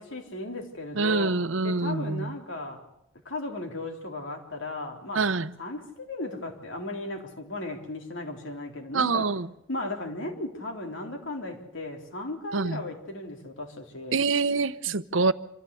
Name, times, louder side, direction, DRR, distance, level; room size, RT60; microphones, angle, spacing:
voice 1, 0.0-1.3 1.6-2.8 3.3-5.2 5.6-9.2 9.7-14.2, left 2 dB, 65° left, 3.6 m, -36 dB
voice 2, 0.9-2.3 5.1-5.5 8.9-9.5 12.5-12.8 14.1-15.3, right 4 dB, 70° right, 0.8 m, -25 dB
26.0 x 14.0 x 8.4 m
head